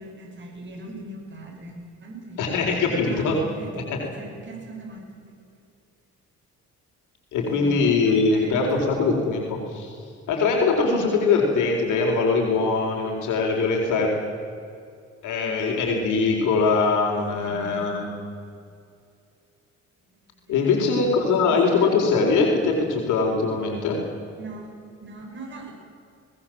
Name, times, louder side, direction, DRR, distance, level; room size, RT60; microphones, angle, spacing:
voice 1, 0.0-5.6 7.4-8.9 15.4-15.8 17.1-18.0 20.4-22.1 24.4-24.7 25.0-25.7, right 1 dB, 40° right, 0 dB, 6.7 m, -40 dB
voice 2, 2.4-3.4 7.3-9.9 10.3-14.1 15.2-18.1 20.5-24.0, left 4 dB, 85° left, 0 dB, 4.4 m, -22 dB
21.5 x 19.0 x 7.7 m, 2.4 s
cardioid pair, 90°, 30 cm